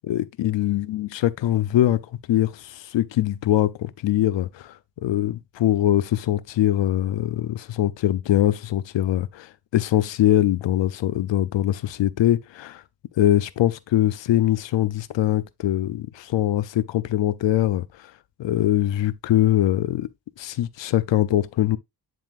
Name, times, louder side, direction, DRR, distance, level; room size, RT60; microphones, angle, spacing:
voice 1, 0.0-2.0 2.3-12.8 13.2-18.1 18.4-20.1 20.4-21.8, left 13 dB, 90° left, 0.5 m, -22 dB
10.5 x 3.7 x 2.4 m
cardioid pair, 80°, 43 cm